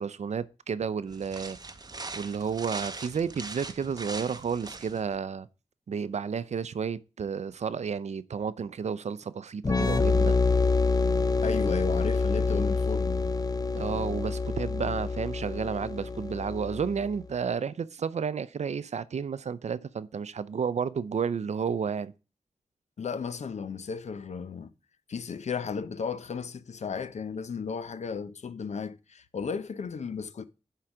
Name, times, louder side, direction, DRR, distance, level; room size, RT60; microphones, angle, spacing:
voice 1, 0.0-1.6 2.1-5.5 5.9-10.4 13.7-22.1, right 6 dB, 75° right, 0.5 m, -31 dB
sound 1, 1.1-5.2, right 3 dB, 35° right, 0.7 m, -41 dB
sound 2, 9.6-17.2, left 4 dB, 30° left, 0.5 m, -27 dB
voice 2, 11.4-13.4 23.0-24.7 25.1-30.5, left 5 dB, 75° left, 0.6 m, -34 dB
10.0 x 3.8 x 4.9 m
wide cardioid pair, 85°, 12 cm